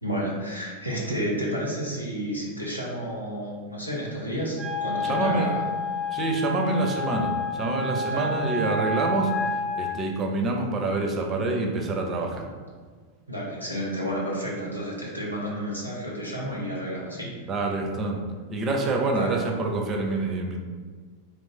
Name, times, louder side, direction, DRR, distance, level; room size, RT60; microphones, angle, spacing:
voice 1, 0.0-5.6 8.1-8.3 13.3-17.3 19.1-19.4, equal, 85° left, -4 dB, 0.7 m, -31 dB
Wind instrument woodwind instrument, 4.6-9.9, left 2 dB, 25° left, 0.7 m, -29 dB
voice 2, 5.0-5.5 6.1-12.5 17.5-18.2 18.5-20.6, right 2 dB, 25° right, 1 dB, 0.5 m, -26 dB
2.4 x 2.4 x 3.6 m, 1.5 s
figure-of-eight pair, 90°, 0 cm